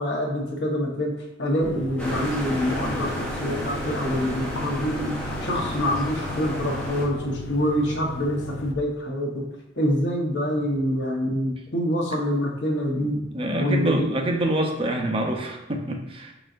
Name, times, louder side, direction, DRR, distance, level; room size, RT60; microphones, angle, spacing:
voice 1, 0.0-9.4 9.7-13.2 13.6-14.1, equal, 65° left, 0 dB, 1.0 m, -26 dB
sound 1, 1.6-8.7, left 2 dB, 80° left, 0.4 m, -37 dB
sound 2, 2.0-7.1, equal, 5° left, 0.9 m, -31 dB
voice 2, 13.0-16.3, right 1 dB, 30° right, 2 dB, 0.6 m, -26 dB
5.4 x 3.9 x 2.5 m, 0.96 s
head